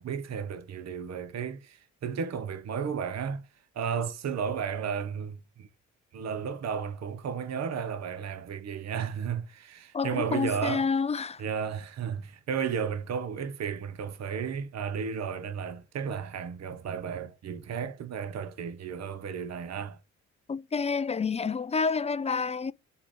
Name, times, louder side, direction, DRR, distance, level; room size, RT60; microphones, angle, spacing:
voice 1, 0.0-3.5 3.7-5.7 6.1-10.9 11.4-20.0, right 7 dB, 50° right, 0.9 m, -33 dB
voice 2, 9.9-11.4 20.5-22.7, left 5 dB, 20° left, 0.4 m, -29 dB
6.8 x 2.7 x 5.1 m
hypercardioid pair, 50°, 34 cm